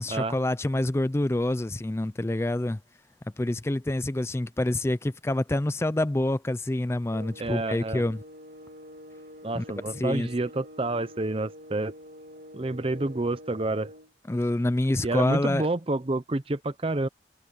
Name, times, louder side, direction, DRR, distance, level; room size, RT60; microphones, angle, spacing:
voice 1, 0.0-2.8 3.4-8.2 9.5-9.6 9.9-10.3 14.3-15.7, left 1 dB, 15° left, 0.4 m, -27 dB
sound 1, 7.1-14.1, equal, 55° right, 2.3 m, -46 dB
voice 2, 7.4-8.0 9.4-11.9 12.5-13.9 15.0-17.1, right 2 dB, 30° right, 0.7 m, -28 dB
head